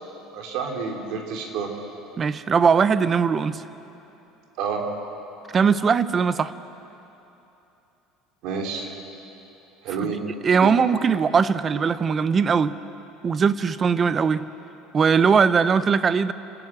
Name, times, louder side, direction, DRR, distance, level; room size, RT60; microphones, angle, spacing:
voice 1, 0.3-1.7 4.6-4.9 8.4-8.9 9.8-10.2 10.6-10.7, right 6 dB, 60° right, 2 dB, 3.3 m, -29 dB
voice 2, 2.2-3.6 5.5-6.5 10.4-12.8 13.2-14.5 14.9-16.3, right 6 dB, 20° right, 14 dB, 0.6 m, -20 dB
29.0 x 12.5 x 8.9 m, 3.0 s
cardioid pair, 170°, 0 cm